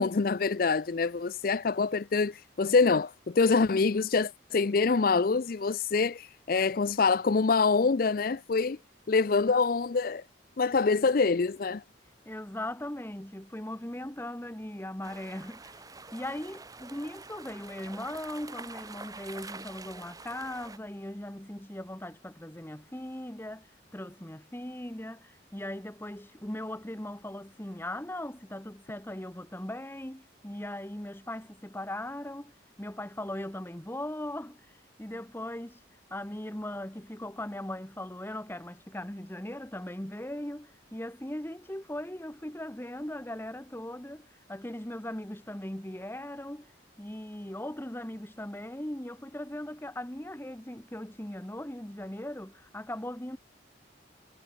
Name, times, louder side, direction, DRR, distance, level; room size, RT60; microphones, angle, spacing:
voice 1, 0.0-8.8 9.1-10.2 10.6-11.8, left 4 dB, 50° left, 0.5 m, -25 dB
voice 2, 12.2-15.8 16.1-32.5 32.8-34.7 35.0-35.8 36.1-46.7 47.0-53.4, left 1 dB, 10° left, 1.3 m, -39 dB
sound 1, 15.0-20.8, right 3 dB, 20° right, 1.5 m, -46 dB
head